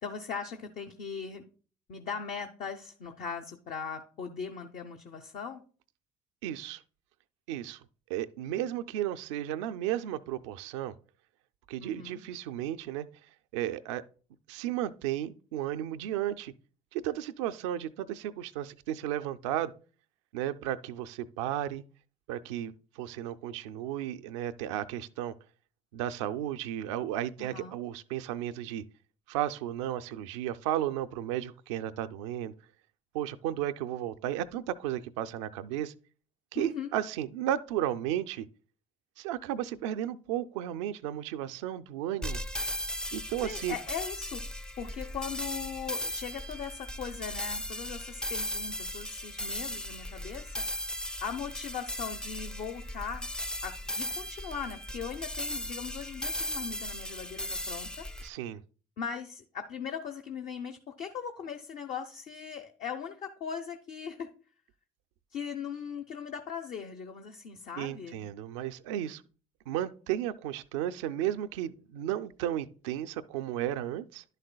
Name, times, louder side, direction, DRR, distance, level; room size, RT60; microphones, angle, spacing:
voice 1, 0.0-1.4 1.9-5.6 11.8-12.2 27.4-27.7 36.5-36.9 43.4-44.4 44.8-50.6 51.2-53.3 53.6-58.1 59.0-64.3 65.3-68.2, left 6 dB, 60° left, 0.8 m, -39 dB
voice 2, 6.4-6.8 7.5-7.8 8.1-10.9 11.7-13.1 13.5-14.0 14.5-16.5 16.9-19.7 20.3-21.8 22.3-25.3 25.9-28.8 29.3-32.5 33.1-35.9 36.5-38.5 39.2-42.4 43.1-43.8 58.2-58.6 67.8-69.2 69.7-74.2, right 12 dB, 85° right, 0.4 m, -34 dB
sound 1, 42.2-58.3, equal, 5° left, 0.4 m, -37 dB
11.0 x 6.6 x 2.2 m
hypercardioid pair, 60°, 15 cm